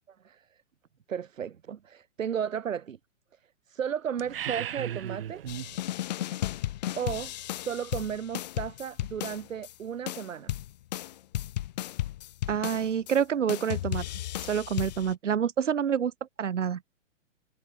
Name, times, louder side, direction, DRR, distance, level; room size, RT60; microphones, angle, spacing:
voice 1, 1.1-3.0 3.7-5.4 7.0-10.5, right 8 dB, 90° right, 2.7 m, -34 dB
sound 1, 4.2-5.8, right 10 dB, 45° right, 6.9 m, -35 dB
sound 2, 5.5-9.7 10.1-13.2 13.5-15.1, left 14 dB, 35° left, 3.1 m, -34 dB
voice 2, 12.5-14.1 14.5-16.1 16.4-16.8, right 8 dB, 70° right, 7.1 m, -27 dB
hypercardioid pair, 175°, 38 cm